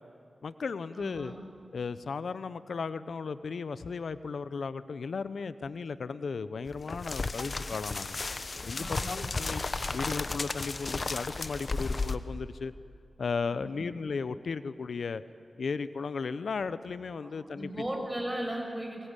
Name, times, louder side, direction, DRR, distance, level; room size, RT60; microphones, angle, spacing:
voice 1, 0.4-1.3 1.7-8.2 8.7-9.6 9.9-12.7 13.2-15.2 15.6-17.7, left 5 dB, 85° left, 14 dB, 0.7 m, -35 dB
voice 2, 0.9-1.4 8.7-9.5 13.4-13.8 17.2-17.3 17.5-19.1, right 1 dB, 15° right, 1 dB, 6.0 m, -37 dB
sound 1, 6.7-12.2, left 3 dB, 55° left, 1.0 m, -34 dB
23.0 x 20.0 x 8.3 m, 2.4 s
cardioid pair, 60°, 0 cm